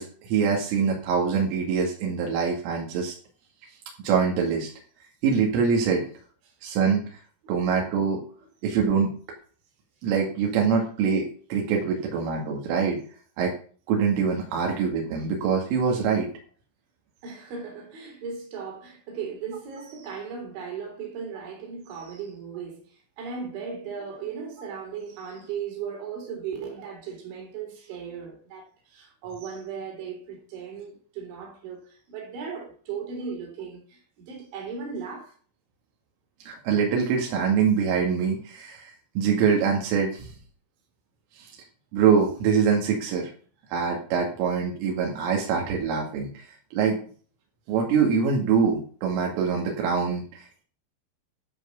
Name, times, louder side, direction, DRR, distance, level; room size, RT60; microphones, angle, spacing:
voice 1, 0.0-3.2 4.0-4.7 5.2-6.1 6.6-7.0 7.5-8.2 8.6-9.1 10.0-13.0 13.4-13.5 13.9-16.3 36.5-40.3 41.3-41.5 41.9-43.3 43.7-46.3 46.7-47.0 47.7-50.6, right 6 dB, 85° right, 4.6 m, -24 dB
voice 2, 17.2-35.4, right 6 dB, 65° right, 5.6 m, -37 dB
12.5 x 5.5 x 6.9 m
omnidirectional pair, 5.7 m